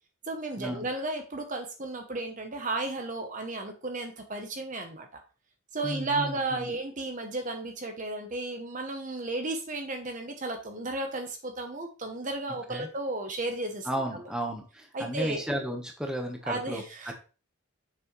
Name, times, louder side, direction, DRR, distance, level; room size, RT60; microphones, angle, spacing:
voice 1, 0.3-5.2 5.7-14.3 14.9-15.4 16.4-17.1, right 2 dB, 35° right, 5 dB, 0.9 m, -34 dB
voice 2, 5.8-6.7 12.7-12.9 13.8-16.8, equal, 5° right, 2 dB, 1.2 m, -33 dB
7.4 x 6.1 x 3.2 m, 0.34 s
head